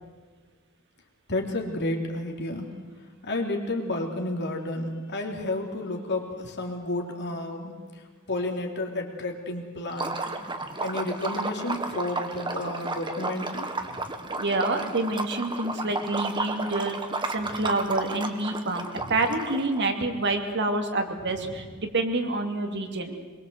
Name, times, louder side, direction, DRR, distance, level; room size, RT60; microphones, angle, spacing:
voice 1, 1.3-2.7 3.2-7.8 8.3-10.3 10.8-14.1, left 2 dB, 55° left, 2 dB, 3.3 m, -31 dB
Liquid, 9.9-19.8, right 3 dB, 20° right, 1.6 m, -33 dB
voice 2, 14.3-17.0 17.3-23.2, right 2 dB, 55° right, 5 dB, 2.6 m, -27 dB
23.5 x 22.0 x 8.1 m, 1.5 s
head